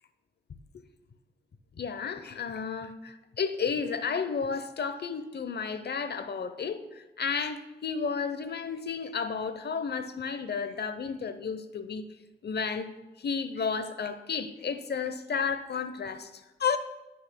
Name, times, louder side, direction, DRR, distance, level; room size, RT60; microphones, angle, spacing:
voice 1, 1.8-12.1 12.4-12.9 13.2-16.8, left 6 dB, 60° left, 11 dB, 0.8 m, -32 dB
16.0 x 6.3 x 2.2 m, 1.1 s
cardioid pair, 50°, 19 cm